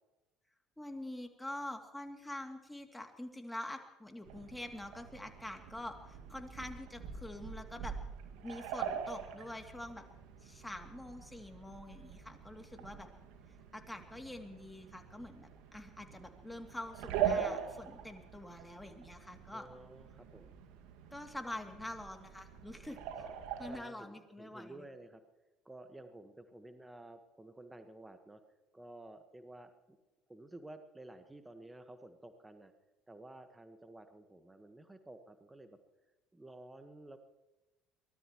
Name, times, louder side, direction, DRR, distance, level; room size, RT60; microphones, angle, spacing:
voice 1, 0.8-7.9 8.4-10.0 10.4-13.1 13.7-19.7 21.1-23.0 23.6-24.9, left 1 dB, 5° left, 4 dB, 2.7 m, -46 dB
sound 1, 4.2-23.8, right 8 dB, 60° right, 2.1 m, -43 dB
voice 2, 19.5-20.6 23.2-25.2 25.6-28.4 28.7-30.0 30.3-32.7 33.1-35.8 36.3-37.2, right 2 dB, 10° right, 8 dB, 1.5 m, -53 dB
23.5 x 19.0 x 3.1 m, 1.0 s
figure-of-eight pair, 60°, 0 cm